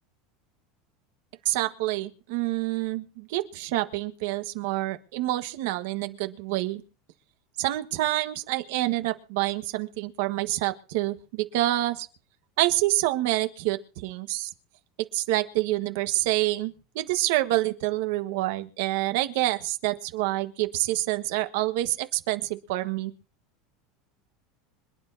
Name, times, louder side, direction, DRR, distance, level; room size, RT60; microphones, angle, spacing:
voice 1, 1.4-6.8 7.6-12.1 12.6-14.5 15.1-23.1, right 16 dB, 75° right, 9 dB, 1.3 m, -27 dB
26.0 x 9.8 x 2.7 m, 0.37 s
supercardioid pair, 140°, 0 cm